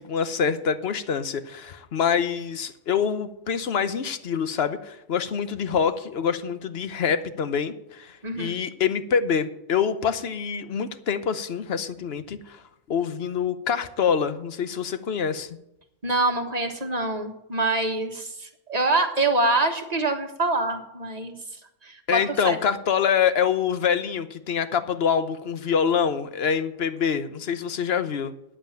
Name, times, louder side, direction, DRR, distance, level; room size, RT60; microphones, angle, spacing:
voice 1, 0.0-12.6 12.9-15.5 22.1-28.3, left 7 dB, 60° left, 12 dB, 1.0 m, -25 dB
voice 2, 8.2-8.5 16.0-21.4 21.8-22.6, right 2 dB, 35° right, 4 dB, 1.5 m, -25 dB
9.9 x 8.0 x 9.0 m, 0.84 s
omnidirectional pair, 1.3 m